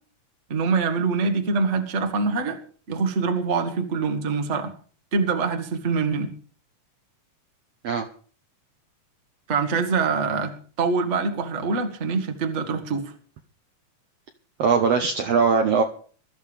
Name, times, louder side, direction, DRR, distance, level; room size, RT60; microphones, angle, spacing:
voice 1, 0.5-2.6 2.9-4.7 5.1-6.3 9.5-13.1, right 4 dB, 35° right, 6 dB, 1.3 m, -24 dB
voice 2, 14.6-15.8, right 5 dB, 65° right, 5 dB, 1.6 m, -20 dB
22.0 x 13.5 x 3.5 m, 0.44 s
omnidirectional pair, 3.7 m